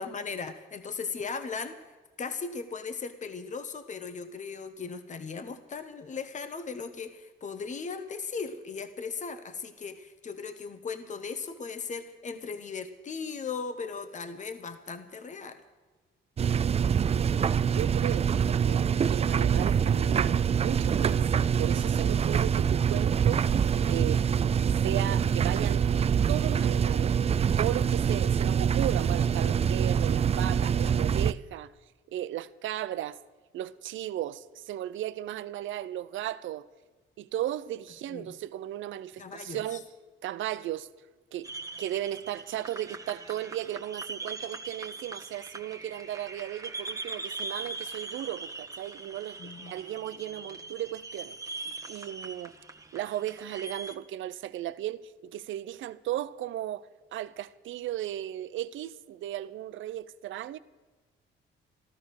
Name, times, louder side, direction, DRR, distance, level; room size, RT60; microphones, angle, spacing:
voice 1, 0.0-1.8 2.2-15.6 38.1-38.4 39.2-39.8 49.4-49.7, left 5 dB, 40° left, 1.2 m, -37 dB
sound 1, 16.4-31.3, right 7 dB, 30° right, 0.4 m, -25 dB
voice 2, 17.6-24.3 24.8-25.9 26.3-27.2 27.6-31.7 32.1-33.2 33.5-36.7 37.2-39.8 40.2-40.9 41.3-41.5 41.8-52.5 52.9-60.6, right 13 dB, 75° right, 0.7 m, -36 dB
sound 2, 41.4-53.9, right 3 dB, 15° right, 1.3 m, -41 dB
14.5 x 13.0 x 6.4 m
cardioid pair, 90°, 20 cm